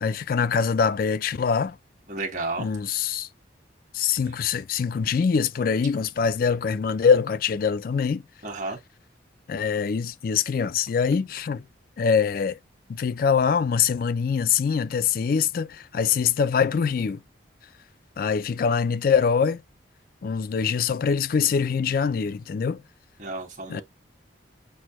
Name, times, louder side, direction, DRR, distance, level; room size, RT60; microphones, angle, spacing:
voice 1, 0.0-1.8 2.6-3.3 3.9-8.2 9.5-11.6 12.0-12.6 12.9-17.2 18.2-19.6 20.2-22.8 23.7-23.8, left 6 dB, 50° left, 0.3 m, -24 dB
voice 2, 2.1-2.7 8.4-8.8 23.2-23.8, right 3 dB, 45° right, 1.5 m, -31 dB
6.2 x 2.2 x 2.9 m
head